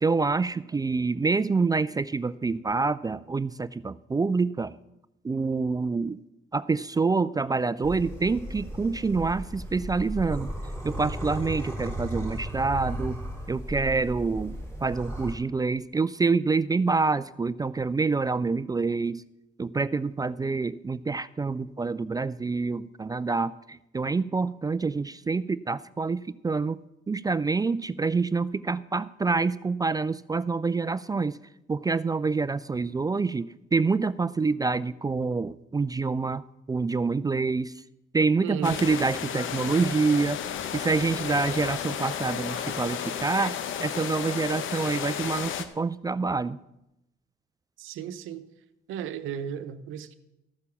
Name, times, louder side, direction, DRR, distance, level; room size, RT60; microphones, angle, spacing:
voice 1, 0.0-4.8 5.2-6.2 6.5-10.5 10.8-13.2 13.5-14.6 14.8-19.2 19.6-26.8 27.1-31.4 31.7-37.7 38.1-40.4 40.7-46.6, right 4 dB, 20° right, 16 dB, 0.3 m, -27 dB
sound 1, 7.8-15.3, equal, 15° left, 4.0 m, -35 dB
voice 2, 38.4-38.8 47.8-48.5 48.9-50.2, right 9 dB, 90° right, 12 dB, 0.8 m, -34 dB
sound 2, 38.6-45.6, left 8 dB, 80° left, 1.0 m, -33 dB
13.5 x 6.8 x 7.0 m, 0.88 s
cardioid pair, 90°, 20 cm